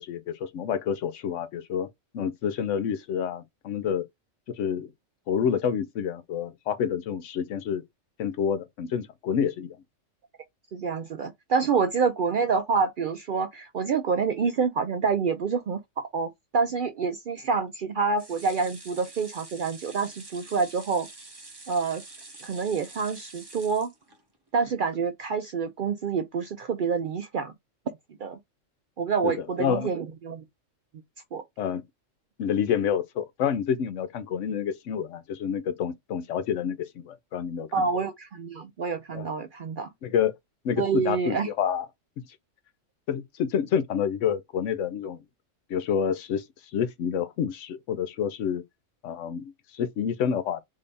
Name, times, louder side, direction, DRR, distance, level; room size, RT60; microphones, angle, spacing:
voice 1, 0.0-1.9 2.1-4.0 4.5-4.9 5.3-7.8 8.2-9.8 29.2-29.3 29.6-29.9 31.6-31.8 32.4-37.8 39.1-39.2 40.0-40.4 40.6-41.9 43.1-45.2 45.7-46.4 46.7-48.6 49.0-50.6, left 8 dB, 75° left, 1.0 m, -28 dB
voice 2, 10.7-21.1 21.7-22.0 22.4-23.9 24.5-27.5 28.2-28.4 29.0-30.4 31.3-31.4 37.7-39.9 40.8-41.5, right 5 dB, 60° right, 0.5 m, -27 dB
sound 1, 18.2-24.5 24.9-25.0 25.3-25.4, right 2 dB, 20° right, 0.8 m, -47 dB
3.7 x 2.6 x 3.3 m
omnidirectional pair, 1.3 m